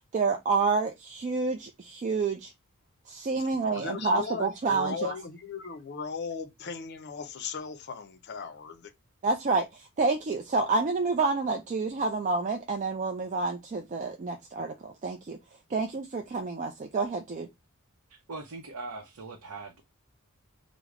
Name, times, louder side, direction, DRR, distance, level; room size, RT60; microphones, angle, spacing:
voice 1, 0.1-2.5 3.1-5.1 9.2-15.4 15.7-17.5, right 3 dB, 35° right, 0.3 m, -28 dB
voice 2, 3.7-8.9, left 5 dB, 50° left, 0.5 m, -37 dB
voice 3, 18.1-19.8, right 3 dB, 85° right, 0.6 m, -41 dB
3.3 x 2.0 x 3.5 m
head